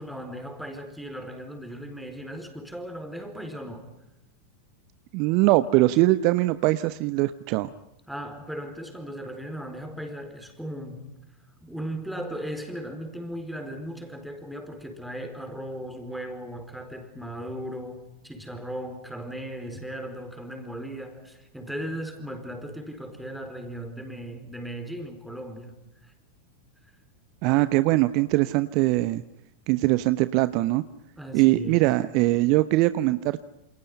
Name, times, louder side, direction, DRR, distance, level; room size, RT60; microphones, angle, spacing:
voice 1, 0.0-3.9 8.1-11.1 11.6-25.8 26.0-26.1 27.5-27.8 31.2-31.9, equal, ahead, 4.5 m, -37 dB
voice 2, 5.1-7.7 27.4-29.2 29.7-30.8 31.3-33.4, right 18 dB, 45° right, 0.8 m, -22 dB
28.5 x 28.0 x 5.6 m
figure-of-eight pair, 90°, 0 cm